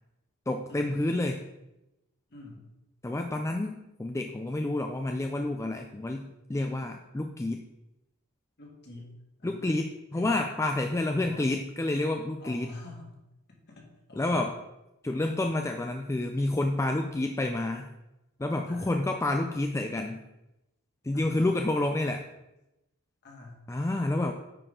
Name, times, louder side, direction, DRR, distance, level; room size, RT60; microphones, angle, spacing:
voice 1, 0.5-1.4 3.0-7.6 9.4-12.7 14.2-14.6 15.0-17.9 18.4-20.2 21.0-22.2 23.7-24.3, left 2 dB, 15° left, 4 dB, 0.4 m, -29 dB
voice 2, 2.3-2.6 8.6-9.8 10.1-10.3 11.1-11.5 12.4-13.2 13.5-14.5 18.7-19.0 21.1-21.5 23.2-23.6, left 2 dB, 50° left, -1 dB, 2.0 m, -46 dB
9.5 x 4.8 x 3.7 m, 0.93 s
head